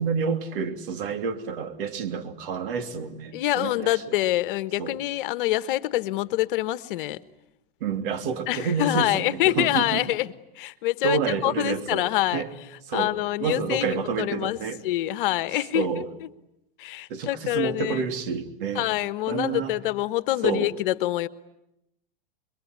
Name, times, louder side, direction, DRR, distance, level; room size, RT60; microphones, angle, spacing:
voice 1, 0.0-4.0 4.8-5.0 7.8-10.0 11.0-12.0 12.3-12.5 12.9-13.1 13.4-14.8 15.7-16.1 17.1-18.9 19.3-19.7 20.4-20.7, right 5 dB, 65° right, 7 dB, 3.1 m, -29 dB
voice 2, 3.3-7.2 8.5-10.3 10.6-12.4 12.9-14.6 14.8-16.3 16.8-18.0 18.7-21.3, left 15 dB, 60° left, 14 dB, 1.3 m, -26 dB
26.5 x 23.0 x 9.7 m, 0.85 s
hypercardioid pair, 125°, 29 cm